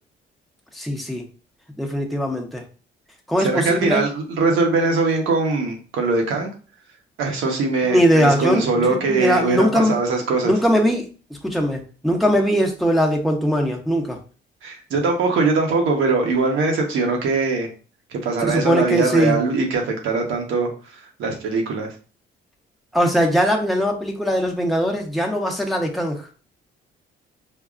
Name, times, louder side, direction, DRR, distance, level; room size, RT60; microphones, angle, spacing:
voice 1, 0.7-1.2 1.8-2.6 3.3-4.0 7.8-10.0 10.4-11.1 11.4-14.2 18.4-19.4 22.9-26.2, equal, ahead, 0 dB, 0.9 m, -20 dB
voice 2, 3.4-6.5 7.2-10.5 14.6-17.7 18.1-20.7 21.2-21.9, right 3 dB, 80° right, 2 dB, 1.1 m, -21 dB
5.5 x 2.2 x 2.5 m, 0.37 s
cardioid pair, 90°, 20 cm